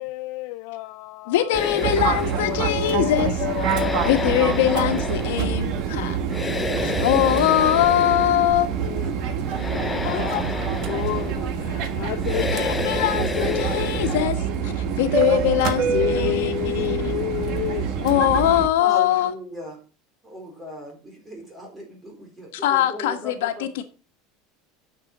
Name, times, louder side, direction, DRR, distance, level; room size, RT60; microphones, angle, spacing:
voice 1, 0.0-2.0 2.4-4.3 4.7-4.8 6.9-7.0 8.8-10.3 10.9-12.6 12.9-13.9 14.1-14.3 15.1-15.2 15.9-18.2, left 17 dB, 50° left, 0.5 m, -31 dB
voice 2, 1.3-3.4 4.0-6.2 6.8-8.7 10.0-10.4 12.5-17.1 18.0-19.3 22.5-23.8, left 12 dB, 85° left, 1.4 m, -22 dB
sound 1, 1.5-14.3, left 3 dB, 10° left, 0.7 m, -31 dB
Fixed-wing aircraft airplane, 1.8-18.7, right 7 dB, 45° right, 1.4 m, -26 dB
voice 3, 18.8-19.8 20.2-23.7, equal, 10° right, 4.0 m, -37 dB
9.9 x 6.7 x 6.0 m
supercardioid pair, 175°, 0 cm